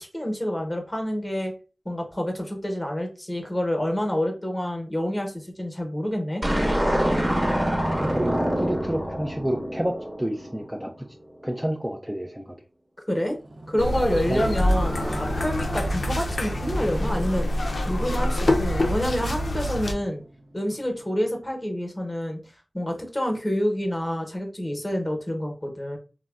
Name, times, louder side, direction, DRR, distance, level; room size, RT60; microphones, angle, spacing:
voice 1, 0.0-1.5 1.8-6.4 13.1-13.4 13.7-17.5 17.9-20.2 20.5-22.4 22.7-26.0, equal, 20° left, 2 dB, 0.8 m, -28 dB
sound 1, 6.4-10.8, equal, 30° right, 0.9 m, -25 dB
voice 2, 7.8-11.1 11.4-12.5 14.3-14.5, right 1 dB, 10° right, 1 dB, 0.4 m, -29 dB
Motorcycle, 13.3-21.4, right 1 dB, 80° right, 0.5 m, -38 dB
sound 2, 13.8-19.9, left 1 dB, 80° left, 0.4 m, -26 dB
3.4 x 2.1 x 2.3 m, 0.34 s
wide cardioid pair, 50°, 0 cm